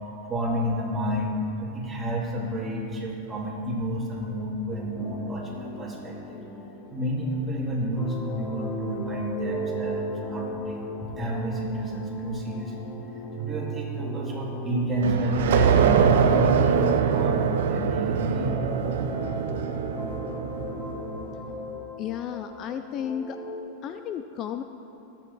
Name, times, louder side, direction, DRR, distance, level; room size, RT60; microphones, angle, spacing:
voice 1, 0.3-6.4 6.9-13.0 13.4-18.6, equal, 15° right, -4 dB, 2.1 m, -30 dB
sound 1, 4.7-18.0 18.5-23.6, left 3 dB, 15° left, 0.8 m, -39 dB
sound 2, 9.3-17.2, right 7 dB, 40° right, 0.7 m, -37 dB
sound 3, 15.0-21.4, right 7 dB, 80° right, 0.7 m, -23 dB
voice 2, 22.0-23.4 23.8-24.6, left 9 dB, 35° left, 8 dB, 0.3 m, -33 dB
18.5 x 7.4 x 4.0 m, 3.0 s
supercardioid pair, 150°, 0 cm